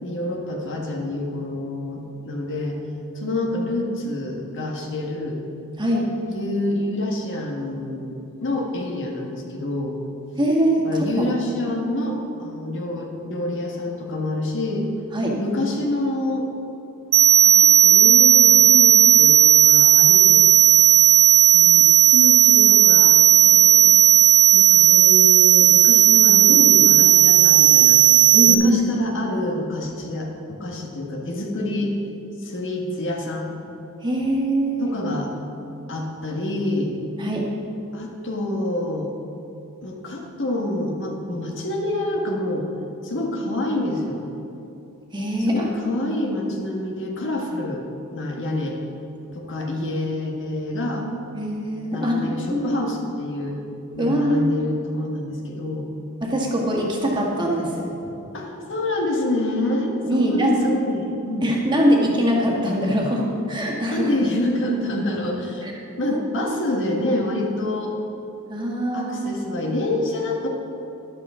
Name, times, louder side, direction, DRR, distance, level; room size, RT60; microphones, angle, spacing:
voice 1, 0.0-2.8 3.1-5.4 6.3-10.0 10.8-14.9 15.4-16.5 17.4-20.5 21.5-24.0 24.5-28.0 28.5-31.9 32.4-33.6 34.8-35.3 35.9-36.9 37.9-39.1 39.8-42.7 43.0-44.2 45.5-47.8 48.1-48.8 49.3-51.1 51.9-53.5 53.9-55.9 58.0-61.5 63.9-65.7 66.0-68.0 68.9-70.5, left 1 dB, 60° left, 0 dB, 1.5 m, -27 dB
voice 2, 5.8-6.1 10.4-11.3 15.1-15.4 28.3-28.8 34.0-34.9 37.2-37.5 45.1-45.7 51.3-52.7 54.0-54.5 56.2-57.9 60.0-60.6 61.4-64.1 65.6-65.7 66.1-66.6 68.5-69.2, equal, 20° right, -2 dB, 1.7 m, -22 dB
sound 1, 17.1-28.5, right 11 dB, 50° right, 0.9 m, -13 dB
13.0 x 11.5 x 3.7 m, 2.9 s
head